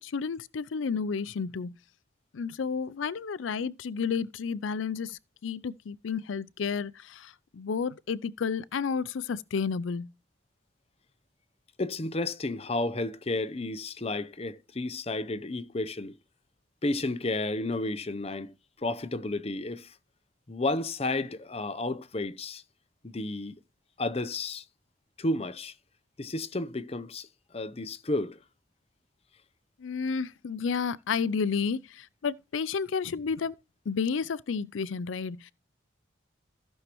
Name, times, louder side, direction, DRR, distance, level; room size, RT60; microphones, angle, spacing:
voice 1, 0.0-1.8 2.3-10.1 29.8-33.5 33.9-35.5, left 5 dB, 85° left, 0.5 m, -31 dB
voice 2, 11.8-16.2 16.8-18.5 18.8-19.9 20.5-22.6 23.0-23.6 24.0-24.6 25.2-25.7 26.2-27.3 27.5-28.4, left 2 dB, 30° left, 0.7 m, -32 dB
15.0 x 6.3 x 3.0 m
head